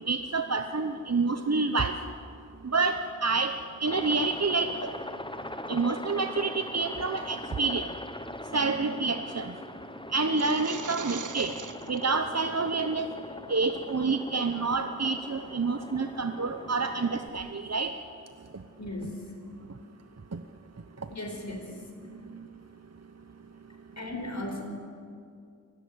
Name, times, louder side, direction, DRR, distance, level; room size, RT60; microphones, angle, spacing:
voice 1, 0.0-1.9 2.6-3.5 3.8-4.9 5.7-7.9 8.5-9.5 10.1-11.5 11.9-13.1 13.5-17.9 20.3-20.4, right 4 dB, 55° right, 7 dB, 1.0 m, -28 dB
Aircraft, 3.9-17.3, left 1 dB, 15° left, 1.2 m, -42 dB
sound 1, 10.2-12.0, right 5 dB, 80° right, 0.8 m, -39 dB
voice 2, 18.8-19.3 21.1-21.8 24.0-24.6, left 1 dB, 65° left, 2 dB, 5.0 m, -36 dB
23.5 x 18.0 x 9.7 m, 2.3 s
wide cardioid pair, 45°, 30 cm